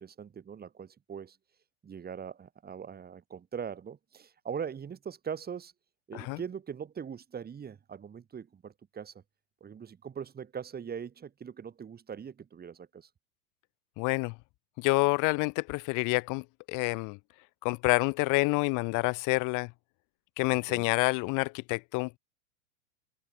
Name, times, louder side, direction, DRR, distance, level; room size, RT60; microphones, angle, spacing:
voice 1, 0.0-1.4 1.8-5.7 6.1-9.2 9.6-13.1 20.5-20.9, right 7 dB, 20° right, 5.5 m, -41 dB
voice 2, 14.0-14.4 14.8-17.2 17.6-19.7 20.4-22.2, left 27 dB, 50° left, 2.1 m, -28 dB
hypercardioid pair, 110°, 41 cm